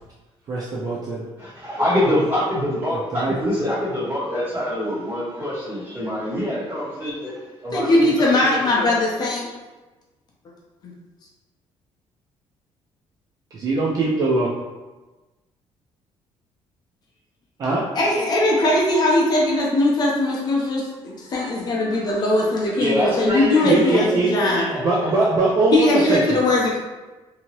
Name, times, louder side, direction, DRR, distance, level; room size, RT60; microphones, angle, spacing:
voice 1, 0.5-1.2 2.9-3.3 13.5-14.5 17.6-17.8 23.6-24.3 24.7-26.4, right 3 dB, 35° right, -5 dB, 0.4 m, -22 dB
voice 2, 1.4-8.9 22.7-25.3, left 1 dB, 20° right, -11 dB, 1.5 m, -25 dB
voice 3, 7.7-9.5 10.8-10.9 17.9-24.7 25.0-25.3 25.6-26.8, left 2 dB, 40° left, -3 dB, 0.6 m, -20 dB
2.7 x 2.7 x 3.0 m, 1.2 s
cardioid pair, 155°, 11 cm